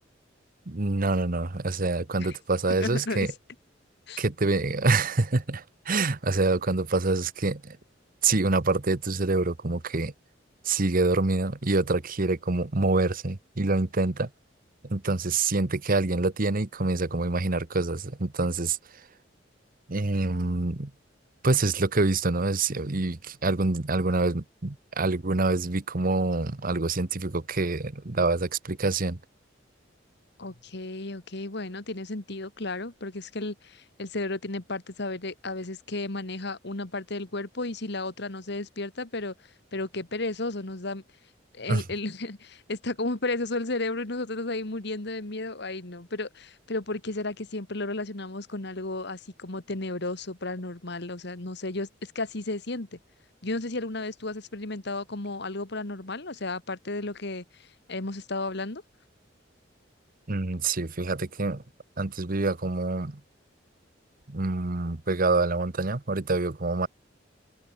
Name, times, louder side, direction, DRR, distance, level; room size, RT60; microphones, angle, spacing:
voice 1, 0.7-3.3 4.2-7.8 8.2-10.1 10.6-14.3 14.8-18.8 19.9-20.9 21.4-29.2 41.7-41.8 60.3-61.6 62.0-63.2 64.3-66.9, right 3 dB, 50° right, 1.1 m, -26 dB
voice 2, 2.7-3.3 4.1-4.2 30.4-39.3 39.7-41.0 41.5-53.0 53.4-58.8, left 2 dB, 65° left, 2.1 m, -33 dB
head